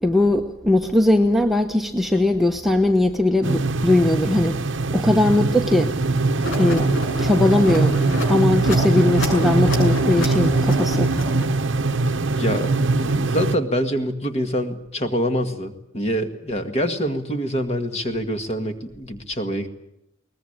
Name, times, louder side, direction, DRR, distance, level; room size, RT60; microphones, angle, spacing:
voice 1, 0.0-4.6 4.9-5.9 6.6-6.9 7.2-7.9 8.3-11.1, left 1 dB, ahead, 3 dB, 1.0 m, -19 dB
sound 1, 3.4-13.6, right 3 dB, 60° right, 0.9 m, -22 dB
sound 2, 6.4-11.7, equal, 60° left, 7.1 m, -29 dB
voice 2, 12.1-19.7, equal, 30° left, 7 dB, 1.9 m, -26 dB
22.0 x 19.5 x 8.9 m, 0.82 s
head